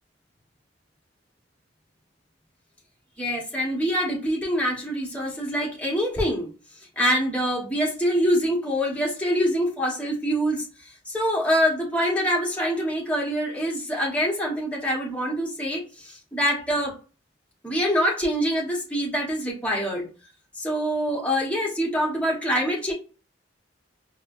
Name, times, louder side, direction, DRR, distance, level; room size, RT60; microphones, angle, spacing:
voice 1, 3.2-6.5 7.0-17.0 17.6-20.1 20.5-22.9, equal, 10° left, -3 dB, 1.1 m, -25 dB
4.2 x 2.2 x 2.6 m, 0.34 s
head